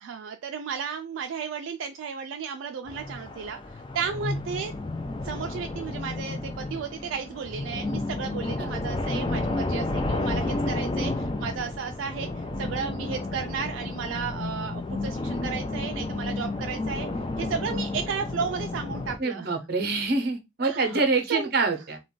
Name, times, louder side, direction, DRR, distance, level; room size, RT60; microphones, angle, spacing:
voice 1, 0.0-4.7 5.2-17.1 17.4-19.5 20.6-21.0 21.3-21.5, right 6 dB, 75° right, 0.3 m, -34 dB
sound 1, 2.9-19.2, left 2 dB, 25° left, 0.4 m, -31 dB
voice 2, 19.2-22.0, right 3 dB, 55° right, 0.7 m, -26 dB
2.5 x 2.2 x 3.7 m
head